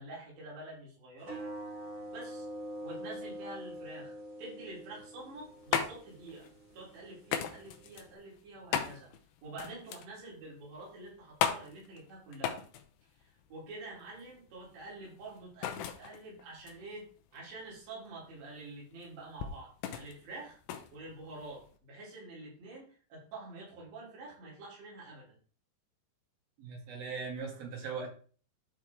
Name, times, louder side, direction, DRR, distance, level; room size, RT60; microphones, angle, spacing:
voice 1, 0.0-1.4 2.1-2.5 2.8-4.1 4.4-6.5 6.7-9.1 9.4-12.6 13.2-17.1 17.3-20.6 20.9-25.4, right 2 dB, 80° right, -5 dB, 5.6 m, -47 dB
sound 1, 1.2-8.1, right 1 dB, 30° right, 1.3 m, -45 dB
sound 2, 5.2-21.8, left 8 dB, 80° left, 2.9 m, -39 dB
voice 2, 26.6-28.1, right 5 dB, 60° right, 0 dB, 3.6 m, -39 dB
12.0 x 4.6 x 3.6 m, 0.41 s
omnidirectional pair, 5.0 m